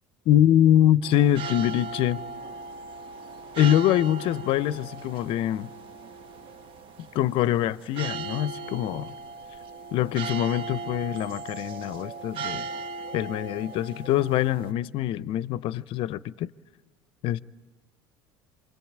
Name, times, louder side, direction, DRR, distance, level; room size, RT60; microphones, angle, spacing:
voice 1, 0.3-2.2 3.6-5.7 7.1-9.1 9.9-12.7 13.1-16.5 17.2-17.4, left 12 dB, 60° left, 0.8 m, -24 dB
sound 1, 1.0-14.7, right 4 dB, 55° right, 1.4 m, -38 dB
27.0 x 24.5 x 8.8 m
supercardioid pair, 90°, 10 cm